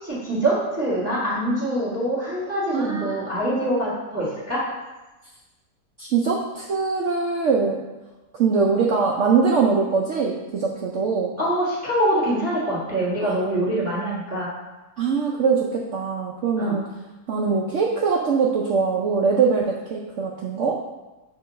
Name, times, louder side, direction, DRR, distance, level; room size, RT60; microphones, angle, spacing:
voice 1, 0.0-4.6 11.4-14.5 16.6-16.8, right 1 dB, 10° right, -8 dB, 1.7 m, -24 dB
voice 2, 2.7-3.2 6.0-7.8 8.4-11.4 13.2-13.3 15.0-16.9 17.3-20.8, right 5 dB, 65° right, -2 dB, 0.8 m, -22 dB
6.7 x 3.0 x 5.1 m, 1.1 s
omnidirectional pair, 1.7 m